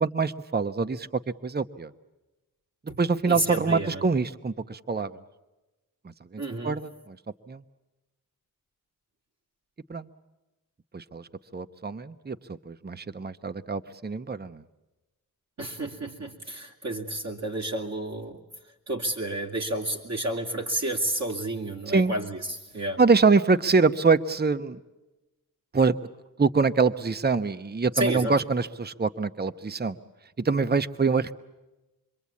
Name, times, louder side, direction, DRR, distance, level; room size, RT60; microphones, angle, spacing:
voice 1, 0.0-1.1 1.4-1.9 3.0-5.1 6.3-7.2 7.5-7.6 9.9-10.1 10.9-14.6 21.9-22.1 23.0-24.8 25.7-25.9 26.4-30.0 30.4-31.4, right 4 dB, 25° right, 12 dB, 0.9 m, -25 dB
voice 2, 3.2-4.0 6.4-6.8 15.6-18.4 18.9-23.0 27.9-28.3, right 1 dB, 50° right, -1 dB, 2.7 m, -31 dB
27.5 x 23.0 x 8.5 m, 1.1 s
wide cardioid pair, 105°, 35 cm